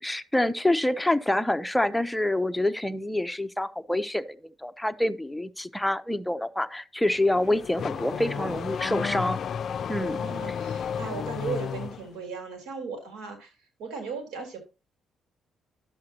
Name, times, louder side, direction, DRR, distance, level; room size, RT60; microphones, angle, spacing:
voice 1, 0.0-4.4 4.6-9.4 9.9-10.2, left 1 dB, 5° left, 0.7 m, -26 dB
Car / Accelerating revving vroom, 7.1-12.1, left 7 dB, 60° left, 0.4 m, -32 dB
voice 2, 7.9-8.7 9.9-13.5 13.8-14.6, right 5 dB, 85° right, 3.4 m, -37 dB
11.5 x 7.4 x 2.8 m
cardioid pair, 90°, 0 cm